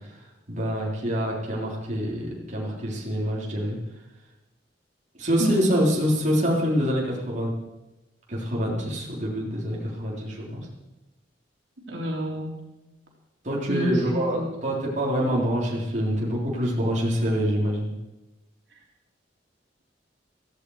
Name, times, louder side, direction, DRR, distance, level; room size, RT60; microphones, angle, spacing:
voice 1, 0.5-3.8 5.1-7.5 8.3-10.7 13.4-17.9, equal, 40° right, -4 dB, 3.8 m, -26 dB
voice 2, 11.9-12.5 13.7-14.5, equal, 70° right, -2 dB, 3.7 m, -28 dB
16.5 x 14.5 x 5.0 m, 1.0 s
head